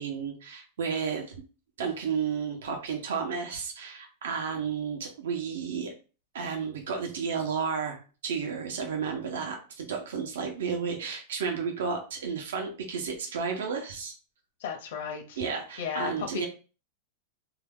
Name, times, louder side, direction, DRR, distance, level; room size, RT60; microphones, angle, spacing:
voice 1, 0.0-1.3 1.8-5.9 6.3-14.1 15.4-16.5, right 6 dB, 90° right, 2 dB, 0.9 m, -32 dB
voice 2, 14.6-15.4 15.8-16.5, left 7 dB, 60° left, 3 dB, 0.7 m, -34 dB
2.8 x 2.3 x 3.5 m, 0.35 s
supercardioid pair, 175°, 0 cm